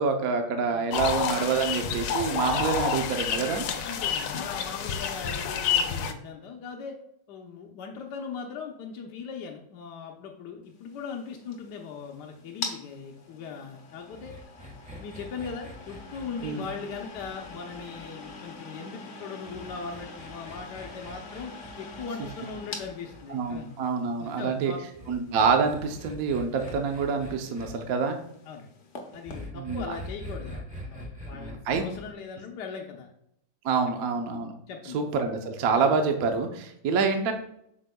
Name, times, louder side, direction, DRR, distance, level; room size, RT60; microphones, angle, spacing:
voice 1, 0.0-3.7 16.4-16.7 23.3-24.7 25.1-28.2 29.5-29.9 31.3-31.9 33.6-34.5 34.9-37.3, right 5 dB, 65° right, 5 dB, 0.9 m, -27 dB
voice 2, 0.7-1.0 2.5-2.9 3.3-3.4 3.8-7.0 7.3-14.3 15.0-23.8 24.2-24.8 28.5-28.7 29.1-33.1 34.7-35.0, left 5 dB, 65° left, 1 dB, 1.2 m, -39 dB
sound 1, 0.9-6.1, left 7 dB, 80° left, 1.5 m, -29 dB
sound 2, 10.8-29.5, left 3 dB, 45° left, 1.0 m, -45 dB
sound 3, 14.1-18.5 19.5-23.6 24.9-27.7 29.2-32.1, left 1 dB, 10° right, 0.3 m, -43 dB
7.9 x 6.3 x 2.3 m, 0.74 s
omnidirectional pair, 2.4 m